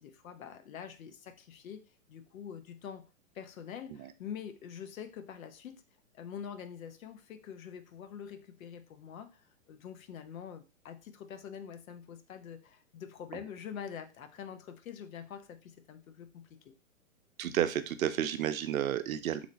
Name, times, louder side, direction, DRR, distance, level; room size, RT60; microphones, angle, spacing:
voice 1, 0.0-3.0 3.3-5.8 6.1-16.7, left 8 dB, 75° left, 9 dB, 0.7 m, -45 dB
voice 2, 17.4-19.5, right 10 dB, 80° right, 11 dB, 0.5 m, -31 dB
3.2 x 2.0 x 3.8 m, 0.32 s
hypercardioid pair, 140°, 41 cm